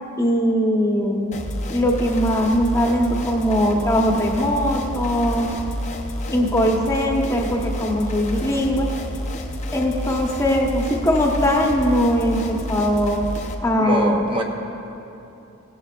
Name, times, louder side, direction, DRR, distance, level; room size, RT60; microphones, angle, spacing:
voice 1, 0.2-1.3 1.7-5.5 6.3-8.9 9.7-13.3 13.6-14.2, equal, 15° left, 0 dB, 1.1 m, -20 dB
sound 1, 1.3-13.6, left 1 dB, 30° left, 0.8 m, -30 dB
voice 2, 13.8-14.4, right 1 dB, 25° right, 1 dB, 0.8 m, -23 dB
17.5 x 14.0 x 2.5 m, 2.9 s
head